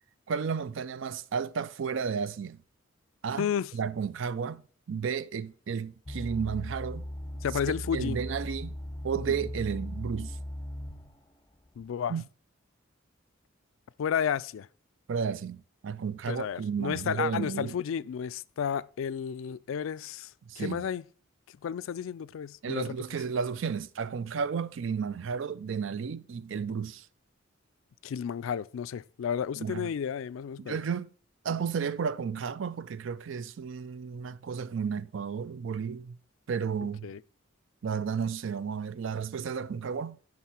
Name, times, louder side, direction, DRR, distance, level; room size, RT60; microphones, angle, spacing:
voice 1, 0.3-2.6 3.2-4.6 4.9-7.1 7.7-8.8 9.0-10.4 12.1-12.2 15.1-17.8 20.5-20.8 22.6-27.1 29.6-29.9 30.6-31.1 31.4-36.2 36.5-37.1 37.8-40.2, right 6 dB, 65° right, 0.4 m, -33 dB
voice 2, 3.4-3.7 7.4-8.2 9.3-9.4 11.8-12.1 14.0-14.7 16.3-20.3 20.6-21.0 21.6-22.9 28.0-30.8 37.0-37.2, left 8 dB, 75° left, 0.3 m, -32 dB
sound 1, 6.1-11.2 11.8-11.9, left 1 dB, 15° left, 0.5 m, -38 dB
10.5 x 3.6 x 5.7 m
head